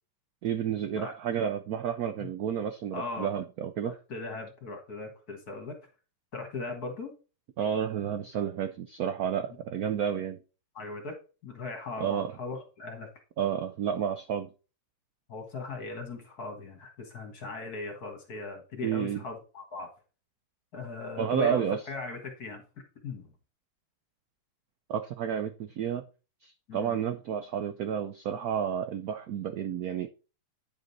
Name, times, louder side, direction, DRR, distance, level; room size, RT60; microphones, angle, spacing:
voice 1, 0.4-3.9 7.6-10.4 12.0-12.4 13.4-14.5 18.8-19.2 21.2-21.8 24.9-26.0 26.4-30.1, right 8 dB, 85° right, 0.8 m, -31 dB
voice 2, 2.9-3.3 3.8-5.8 6.3-7.1 10.8-11.2 11.4-13.1 15.3-19.9 20.7-22.6 23.0-23.3 26.7-27.0, left 3 dB, 50° left, 1.9 m, -38 dB
9.4 x 5.1 x 4.0 m
omnidirectional pair, 2.3 m